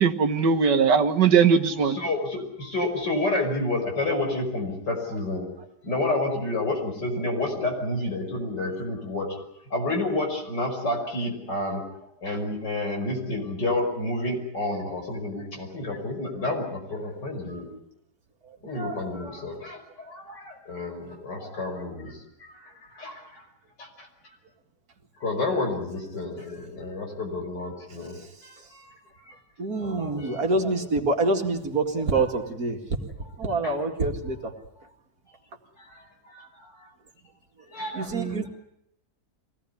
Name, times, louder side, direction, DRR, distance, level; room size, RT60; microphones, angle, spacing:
voice 1, 0.0-2.0 38.1-38.4, right 6 dB, 80° right, 9 dB, 2.0 m, -20 dB
voice 2, 1.8-5.5 5.8-9.4 9.7-17.7 18.6-23.4 23.8-24.1 25.2-28.2 28.4-28.9 29.8-30.5 33.6-33.8 34.8-34.9 35.8-36.9 37.7-38.5, left 2 dB, 80° left, 2 dB, 6.2 m, -30 dB
voice 3, 29.6-32.8 33.4-34.5 37.9-38.5, right 2 dB, 60° right, 4 dB, 2.7 m, -26 dB
23.5 x 18.0 x 9.8 m, 0.80 s
omnidirectional pair, 1.8 m